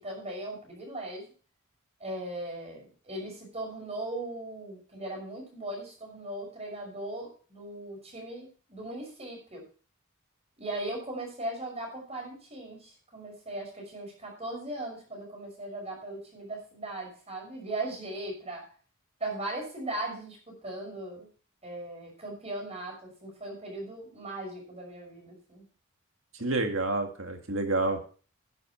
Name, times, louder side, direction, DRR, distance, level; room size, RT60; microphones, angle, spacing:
voice 1, 0.0-1.3 2.0-9.6 10.6-18.7 19.2-21.3 21.6-25.6, right 1 dB, 30° right, 0 dB, 6.2 m, -38 dB
voice 2, 26.4-28.0, right 2 dB, 65° right, 5 dB, 2.0 m, -28 dB
11.0 x 10.5 x 4.5 m, 0.39 s
head